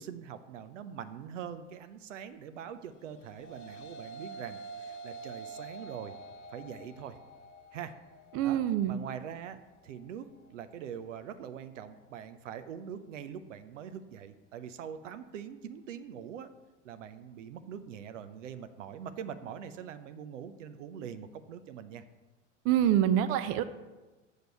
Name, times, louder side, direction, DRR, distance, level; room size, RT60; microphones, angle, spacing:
voice 1, 0.0-6.1 6.5-7.2 7.7-8.0 8.4-16.5 16.8-22.0, right 8 dB, 80° right, 11 dB, 0.7 m, -43 dB
sound 1, 3.0-12.1, right 3 dB, 70° left, 1.0 m, -48 dB
voice 2, 8.3-8.9 22.6-23.6, right 11 dB, 40° right, 12 dB, 0.5 m, -26 dB
6.4 x 5.1 x 6.8 m, 1.2 s
hypercardioid pair, 90°, 37 cm